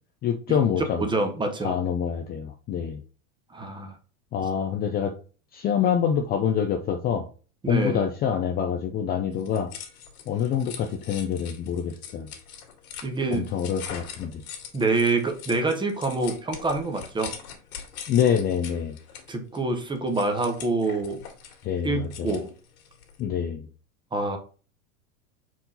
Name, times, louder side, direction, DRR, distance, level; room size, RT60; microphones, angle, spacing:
voice 1, 0.2-1.1 1.6-3.0 4.3-5.1 5.5-7.3 7.7-9.7 10.3-12.3 13.3-14.4 18.1-19.0 21.6-22.4 23.2-23.7, left 8 dB, 25° left, 4 dB, 0.5 m, -26 dB
voice 2, 1.0-1.8 3.5-3.9 7.6-8.0 13.0-13.4 14.7-17.4 19.3-21.2 21.8-22.5 24.1-24.4, right 3 dB, 10° right, 5 dB, 1.0 m, -26 dB
sound 1, 9.3-23.2, left 7 dB, 80° left, 2.2 m, -42 dB
5.7 x 4.7 x 4.0 m, 0.37 s
supercardioid pair, 140°, 42 cm